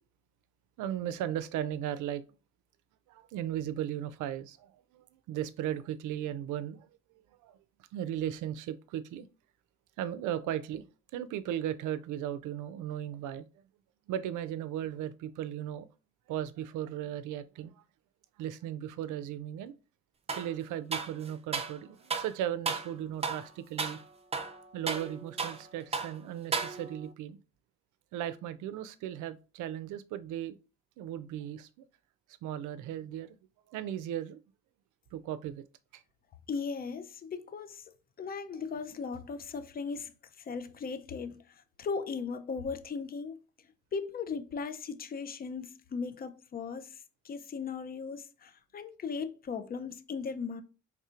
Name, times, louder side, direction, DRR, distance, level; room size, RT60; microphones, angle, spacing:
voice 1, 0.8-2.2 3.1-6.9 7.4-7.6 7.9-9.3 10.0-10.9 11.1-13.5 14.1-15.9 16.3-17.8 18.4-19.7 20.3-24.0 24.7-27.4 28.1-30.6 31.0-31.9 32.4-33.4 33.7-34.4 35.1-35.6 35.9-36.0, right 11 dB, 85° right, 0.5 m, -36 dB
sound 1, 20.3-20.5 20.9-21.8 22.1-22.3 22.7-22.9 23.2-23.5 23.8-24.0 24.3-25.7 25.9-26.2 26.5-27.1, right 5 dB, 20° right, 0.5 m, -34 dB
voice 2, 36.5-43.4 43.9-50.6, left 5 dB, 30° left, 0.5 m, -38 dB
4.3 x 3.5 x 2.4 m
cardioid pair, 90°, 30 cm